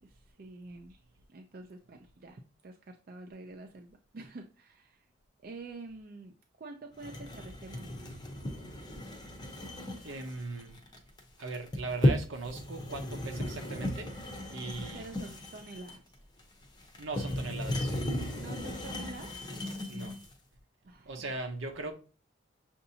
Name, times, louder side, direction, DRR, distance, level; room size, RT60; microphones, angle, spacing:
voice 1, 0.0-1.0 1.3-5.1 5.4-8.1 14.9-16.2 18.4-19.3 20.8-21.4, right 2 dB, 45° right, 0.4 m, -47 dB
sound 1, 7.0-20.3, left 1 dB, 20° left, 0.7 m, -35 dB
voice 2, 10.0-10.7 11.4-14.1 14.5-15.1 17.0-17.9 19.9-20.2 21.1-21.9, right 3 dB, 75° right, 0.8 m, -39 dB
6.6 x 2.6 x 2.7 m
head